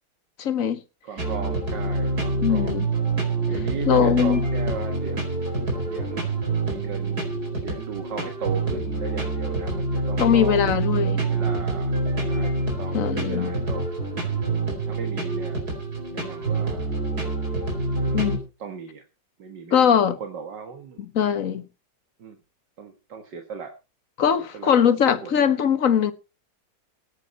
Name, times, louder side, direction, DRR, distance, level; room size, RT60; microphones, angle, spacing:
voice 1, 0.4-0.8 2.4-2.9 3.8-4.4 10.2-11.2 12.9-13.5 18.1-18.4 19.7-20.2 21.1-21.6 24.2-26.1, left 8 dB, 50° left, 1.6 m, -21 dB
voice 2, 1.0-2.9 3.5-5.3 5.8-6.3 6.7-10.7 11.1-11.9 12.3-13.9 14.5-15.7 16.1-16.9 17.9-19.0 19.4-21.1 22.2-22.4 22.8-23.7 24.5-24.8 25.2-25.3, right 6 dB, 75° right, 2.3 m, -37 dB
sound 1, 1.2-18.4, right 2 dB, 55° right, 5.0 m, -26 dB
17.5 x 9.5 x 4.3 m
omnidirectional pair, 1.9 m